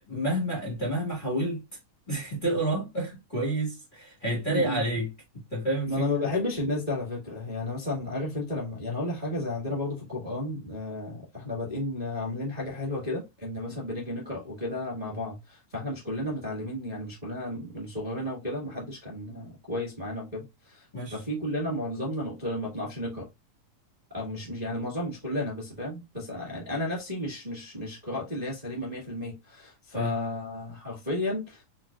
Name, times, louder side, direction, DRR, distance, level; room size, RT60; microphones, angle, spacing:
voice 1, 0.1-1.6 2.1-5.1 5.5-6.1 13.7-13.8 20.9-21.2 29.9-30.1, right 1 dB, 65° left, 0.5 m, -29 dB
voice 2, 4.5-4.8 5.9-20.8 21.1-23.2 24.1-31.6, left 1 dB, 25° right, 0.9 m, -33 dB
5.9 x 2.2 x 2.3 m
omnidirectional pair, 3.6 m